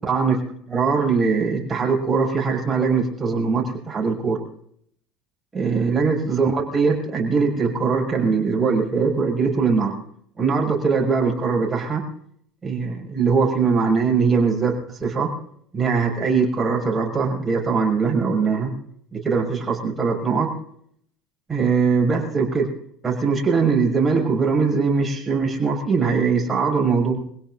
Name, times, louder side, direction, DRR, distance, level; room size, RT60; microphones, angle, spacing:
voice 1, 0.0-0.4 0.7-4.4 5.5-10.0 10.4-12.0 12.6-15.3 15.7-18.7 19.1-20.5 21.5-22.7 23.0-27.2, right 5 dB, 15° right, 0 dB, 7.0 m, -21 dB
26.0 x 17.0 x 2.6 m, 0.66 s
supercardioid pair, 115°, 0 cm